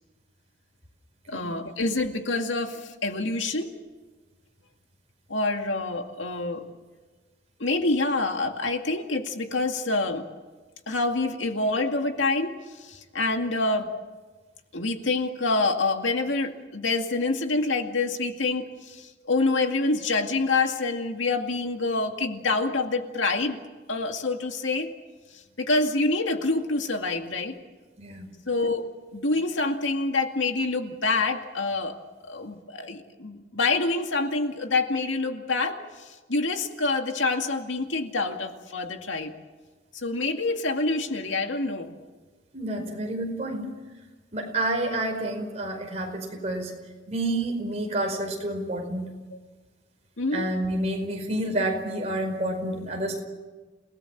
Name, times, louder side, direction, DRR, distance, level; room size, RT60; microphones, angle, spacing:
voice 1, 1.3-3.7 5.3-6.6 7.6-10.2 10.9-13.9 14.7-23.6 23.9-24.9 25.3-27.6 28.5-32.0 32.2-39.3 39.9-41.9 50.2-50.5, left 3 dB, 90° left, 5 dB, 2.3 m, -27 dB
voice 2, 28.0-28.3 42.5-43.7 44.3-46.7 47.1-49.1 50.3-53.2, right 1 dB, 35° right, 2 dB, 5.0 m, -29 dB
29.0 x 18.5 x 7.5 m, 1.3 s
head